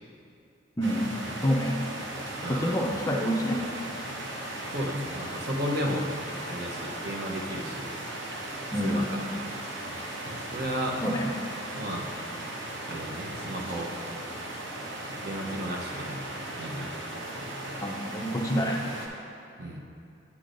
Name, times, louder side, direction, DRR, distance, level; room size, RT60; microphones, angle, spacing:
voice 1, 0.8-1.1 1.4-1.8 2.5-3.6 8.7-9.0 11.0-11.3 17.8-18.8, equal, 20° left, 0 dB, 0.4 m, -27 dB
sound 1, 0.8-19.1, right 1 dB, 80° right, 0.9 m, -37 dB
voice 2, 2.4-2.9 4.7-6.1 6.4-7.9 8.8-9.2 10.3-11.0 11.7-12.1 12.9-13.9 15.0-16.3 16.6-16.9 17.4-17.8 19.6-19.8, equal, 55° right, -1 dB, 0.8 m, -34 dB
8.4 x 8.2 x 2.6 m, 2.5 s
head